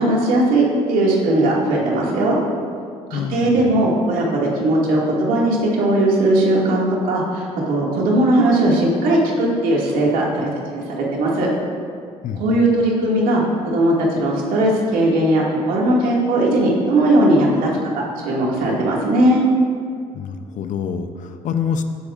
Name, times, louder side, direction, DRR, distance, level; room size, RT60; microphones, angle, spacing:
voice 1, 0.0-2.4 3.1-11.5 12.3-17.7 17.9-19.4, right 1 dB, 75° right, -3 dB, 2.4 m, -18 dB
voice 2, 3.1-3.7 12.2-12.4 20.1-21.8, left 7 dB, 60° left, 8 dB, 0.8 m, -26 dB
16.5 x 8.2 x 2.6 m, 2.2 s
hypercardioid pair, 60°, 15 cm